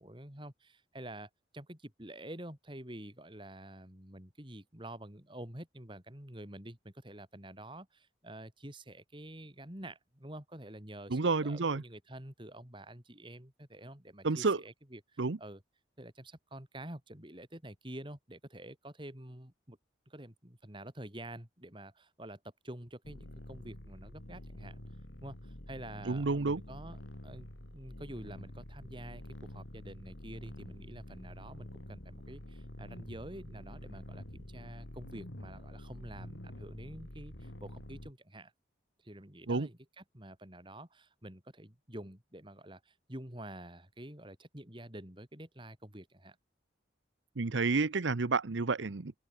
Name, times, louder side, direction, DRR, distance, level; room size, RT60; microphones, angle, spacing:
voice 1, 0.0-15.6 16.0-19.8 20.1-24.8 25.2-27.5 27.7-38.5 39.0-46.4, right 1 dB, 25° right, 4.0 m, -48 dB
voice 2, 11.1-11.8 14.2-14.6 15.2-15.4 26.1-26.6 39.5-39.7 47.4-49.1, right 3 dB, 85° right, 0.8 m, -30 dB
sound 1, 23.0-38.1, left 1 dB, 80° left, 4.2 m, -48 dB
open air
head